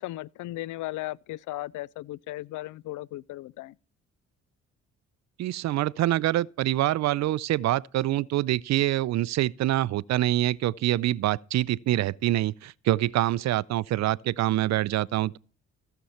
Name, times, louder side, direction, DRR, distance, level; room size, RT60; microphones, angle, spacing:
voice 1, 0.0-3.7, left 17 dB, 75° left, 0.5 m, -36 dB
voice 2, 5.4-15.4, right 14 dB, 65° right, 0.5 m, -25 dB
15.5 x 6.9 x 4.3 m
cardioid pair, 90°, 30 cm